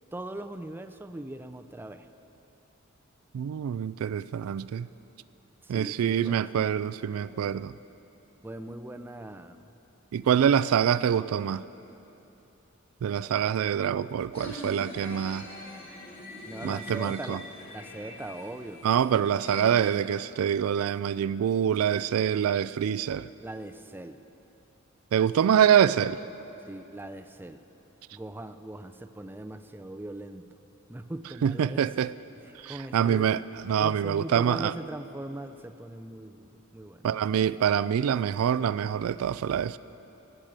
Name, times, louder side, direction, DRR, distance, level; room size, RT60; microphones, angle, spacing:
voice 1, 0.1-2.1 5.6-6.6 8.4-9.6 16.4-17.4 17.7-18.8 23.4-24.2 26.7-27.6 28.1-30.5 30.9-32.1 32.4-33.3 33.8-37.1, right 1 dB, 10° right, 9 dB, 0.4 m, -40 dB
voice 2, 3.3-4.9 5.7-7.7 10.1-11.6 13.0-15.5 16.6-17.4 18.8-23.3 25.1-26.2 31.4-32.1 32.6-33.4 33.6-34.7 37.0-39.8, right 8 dB, 90° right, 16 dB, 0.3 m, -25 dB
sound 1, 14.3-19.6, left 2 dB, 50° left, 2.7 m, -43 dB
15.5 x 8.1 x 7.5 m, 3.0 s
head